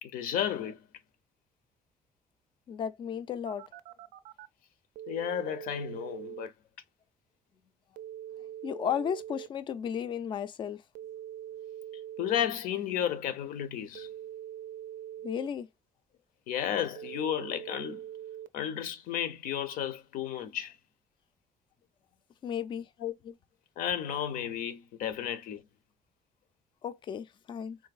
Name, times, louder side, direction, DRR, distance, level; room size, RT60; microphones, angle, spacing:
voice 1, 0.0-0.8 5.1-6.5 12.2-14.1 16.5-18.0 18.5-20.8 23.0-23.3 23.8-25.7, left 10 dB, 75° left, 0.7 m, -33 dB
voice 2, 2.7-3.7 8.6-10.8 15.2-15.7 22.4-22.9 26.8-27.8, left 8 dB, 35° left, 0.3 m, -34 dB
Telephone, 3.5-4.5 5.0-6.5 8.0-9.5 10.9-12.5 13.9-15.5 17.0-18.5, right 11 dB, 70° right, 0.4 m, -43 dB
3.9 x 2.6 x 2.3 m
cardioid pair, 175°, 15 cm